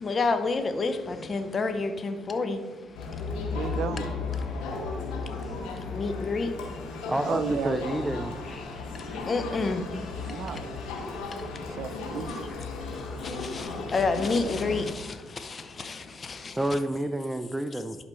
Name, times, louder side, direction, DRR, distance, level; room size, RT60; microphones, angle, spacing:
voice 1, 0.0-2.6 5.9-6.5 9.3-9.8 13.9-14.8, left 3 dB, 45° left, 0.8 m, -27 dB
Crowd, 3.0-14.9, left 4 dB, 85° left, 1.3 m, -35 dB
voice 2, 3.5-4.1 7.2-8.1 10.3-10.8 11.6-12.4, right 6 dB, 70° right, 0.5 m, -33 dB
voice 3, 7.1-8.3 16.6-18.0, right 1 dB, 15° right, 0.5 m, -29 dB
11.0 x 4.9 x 3.1 m
hypercardioid pair, 55°, 0 cm